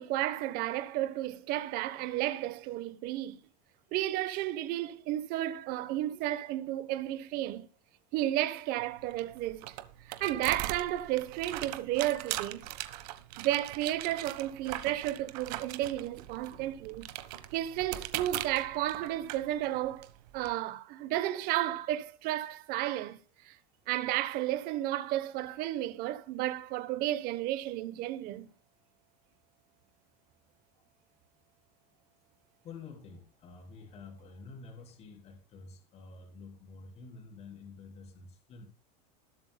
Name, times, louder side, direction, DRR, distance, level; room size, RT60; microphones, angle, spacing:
voice 1, 0.0-3.4 3.9-7.7 8.1-9.8 10.1-12.7 13.4-17.1 17.5-20.1 20.3-23.2 23.4-23.6 23.9-28.5, right 14 dB, 45° right, 1.0 m, -32 dB
sound 1, 8.8-20.5, right 15 dB, 75° right, 1.3 m, -41 dB
voice 2, 32.6-38.7, left 4 dB, 30° left, 3.4 m, -49 dB
20.0 x 8.4 x 2.3 m
supercardioid pair, 155°, 21 cm